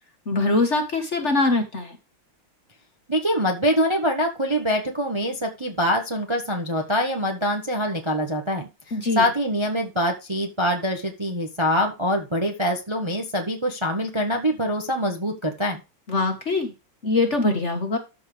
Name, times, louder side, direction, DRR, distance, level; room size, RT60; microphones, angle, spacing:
voice 1, 0.3-2.0 8.9-9.3 16.1-16.7 17.0-18.0, left 2 dB, 35° left, 5 dB, 1.6 m, -22 dB
voice 2, 3.1-8.7 9.1-15.8, equal, 15° right, 3 dB, 1.1 m, -24 dB
13.5 x 4.8 x 3.3 m, 0.27 s
omnidirectional pair, 2.3 m